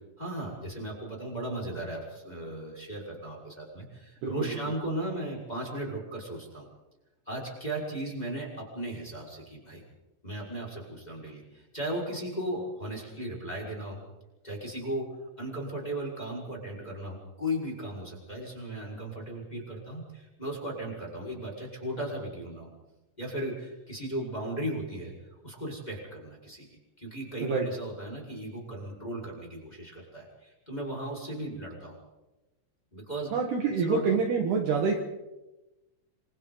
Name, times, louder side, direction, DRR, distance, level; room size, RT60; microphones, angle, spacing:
voice 1, 0.2-6.7 7.3-9.8 10.2-14.0 14.4-15.1 15.4-22.7 23.2-25.1 25.4-26.6 27.0-32.0 32.9-33.3 33.7-34.1, right 1 dB, 10° left, -2 dB, 5.0 m, -36 dB
voice 2, 4.2-4.6 27.4-27.7 33.3-35.0, right 5 dB, 60° right, 2 dB, 3.2 m, -27 dB
27.5 x 27.0 x 4.0 m, 1.0 s
omnidirectional pair, 5.9 m